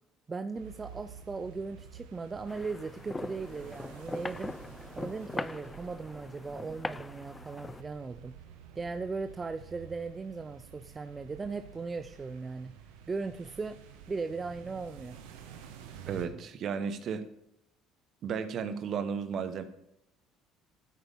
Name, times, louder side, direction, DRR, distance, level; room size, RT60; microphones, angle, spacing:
voice 1, 0.3-4.6 5.0-8.3 8.8-12.7 13.1-13.8 14.1-15.2, right 4 dB, 30° right, 0.6 m, -38 dB
sound 1, 0.5-16.3, right 8 dB, 75° right, 1.4 m, -50 dB
sound 2, 2.5-7.8, left 3 dB, 20° left, 0.5 m, -41 dB
voice 2, 16.1-17.3 18.2-19.6, right 6 dB, 55° right, 1.3 m, -34 dB
13.5 x 9.1 x 3.7 m
hypercardioid pair, 60°, 0 cm